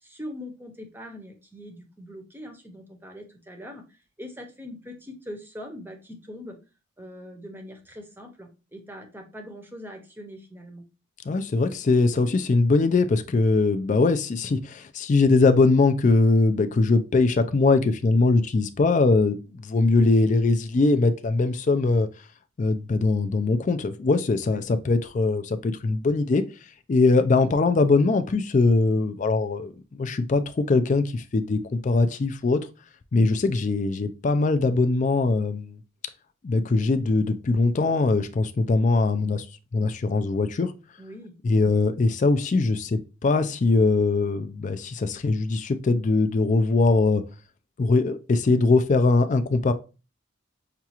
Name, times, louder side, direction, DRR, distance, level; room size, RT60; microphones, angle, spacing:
voice 1, 0.0-6.6 7.0-10.8 24.4-24.6 41.0-41.4, left 1 dB, 10° right, 0.7 m, -42 dB
voice 2, 11.3-22.1 22.6-26.4 26.9-32.6 33.1-35.8 36.4-39.5 39.7-40.7 41.4-47.2 47.8-49.7, left 3 dB, 40° left, 0.3 m, -21 dB
5.7 x 2.4 x 2.8 m
head